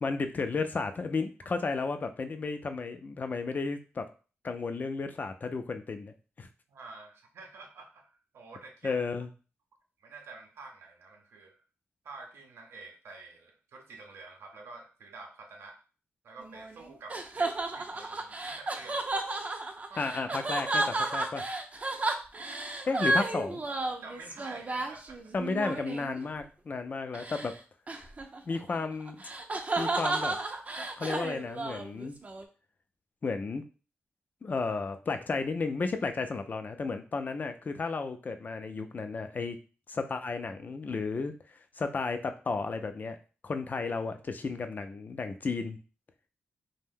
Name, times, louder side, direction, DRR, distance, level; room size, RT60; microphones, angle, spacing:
voice 1, 0.0-4.1 4.4-6.5 8.8-9.3 20.0-21.4 22.9-23.6 25.3-27.5 28.5-29.2 29.8-30.4 30.8-32.2 33.2-33.6 34.4-39.6 39.9-41.3 41.8-43.2 43.4-45.8, left 4 dB, 45° left, 8 dB, 0.4 m, -33 dB
voice 2, 6.7-9.0 10.0-11.6 12.0-15.8 16.2-19.0 19.9-20.0 22.8-23.0 24.0-25.3, right 3 dB, 90° right, 3 dB, 0.6 m, -49 dB
sound 1, 16.4-26.2 27.1-27.5 27.9-32.4, right 2 dB, 35° right, 0.4 m, -33 dB
2.6 x 2.1 x 3.6 m, 0.36 s
cardioid pair, 85°, 4 cm